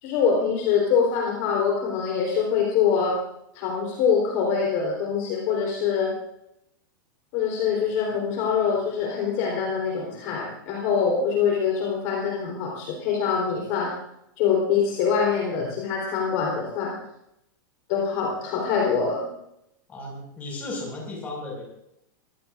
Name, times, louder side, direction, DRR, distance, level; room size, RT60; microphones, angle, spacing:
voice 1, 0.0-3.1 3.5-6.1 7.3-13.9 14.4-16.9 17.9-19.3, left 6 dB, 35° left, -1 dB, 3.6 m, -24 dB
voice 2, 19.9-21.6, left 2 dB, 15° left, -1 dB, 5.3 m, -35 dB
24.0 x 17.0 x 2.5 m, 0.80 s
supercardioid pair, 180°, 11 cm